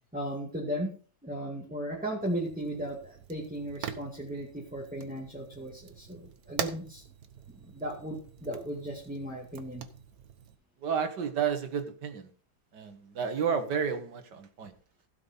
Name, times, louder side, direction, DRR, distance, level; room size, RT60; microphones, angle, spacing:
voice 1, 0.1-0.9 1.2-7.0 7.5-9.9, equal, 5° right, -3 dB, 2.1 m, -36 dB
Fire, 2.2-10.6, right 8 dB, 60° right, 1.4 m, -43 dB
voice 2, 10.8-12.3 12.7-14.7, right 7 dB, 85° right, 9 dB, 2.1 m, -31 dB
16.0 x 5.8 x 5.3 m, 0.39 s
omnidirectional pair, 1.8 m